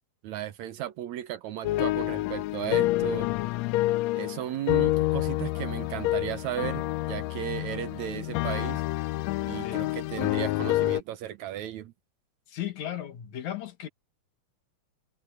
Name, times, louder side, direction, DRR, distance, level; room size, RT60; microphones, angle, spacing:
voice 1, 0.2-3.3 4.2-8.8 9.4-11.9, right 12 dB, 70° right, 2.1 m, -35 dB
sound 1, 1.6-11.0, left 17 dB, 90° left, 1.5 m, -28 dB
voice 2, 9.6-9.9 12.5-13.9, left 11 dB, 70° left, 2.9 m, -36 dB
omnidirectional pair, 3.6 m